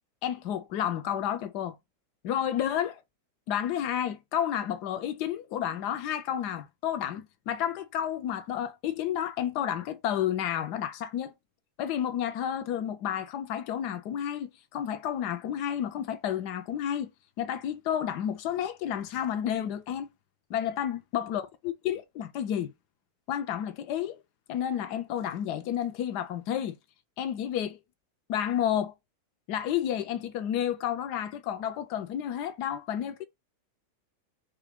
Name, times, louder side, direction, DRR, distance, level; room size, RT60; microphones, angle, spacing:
voice 1, 0.2-1.8 2.2-3.0 3.5-11.3 11.8-17.1 17.4-20.1 20.5-22.7 23.3-24.2 24.5-26.8 27.2-27.8 28.3-28.9 29.5-33.2, left 10 dB, 45° left, 0.3 m, -31 dB
2.8 x 2.5 x 3.6 m
figure-of-eight pair, 90°, 0 cm